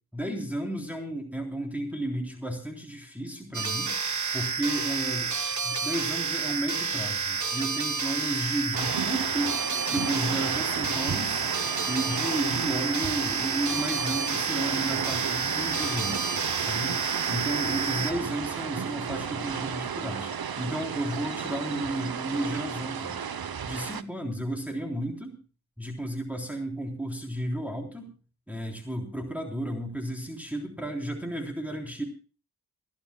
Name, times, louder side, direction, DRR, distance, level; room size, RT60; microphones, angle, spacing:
voice 1, 0.1-3.9 4.3-5.3 5.6-9.6 9.9-11.5 11.9-17.0 17.3-23.1 23.7-25.4 25.8-28.1 28.5-32.0, right 1 dB, 5° right, 0 dB, 3.5 m, -33 dB
sound 1, 3.5-18.1, right 5 dB, 50° right, 1.3 m, -30 dB
sound 2, 8.7-24.0, right 7 dB, 75° right, 0.9 m, -33 dB
30.0 x 12.0 x 2.3 m, 0.37 s
wide cardioid pair, 75°, 37 cm